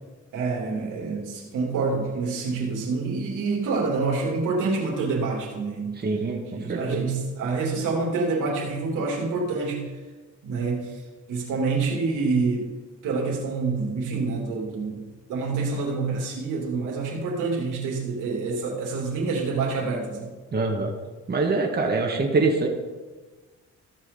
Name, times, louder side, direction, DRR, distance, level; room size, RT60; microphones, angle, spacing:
voice 1, 0.3-6.0 6.5-9.9 10.4-11.0 11.3-12.7 13.0-20.3, right 4 dB, 90° right, -2 dB, 3.1 m, -27 dB
voice 2, 6.0-7.1 20.5-20.9 21.3-22.7, right 3 dB, 35° right, 1 dB, 1.8 m, -24 dB
15.0 x 6.3 x 5.5 m, 1.3 s
cardioid pair, 90°, 30 cm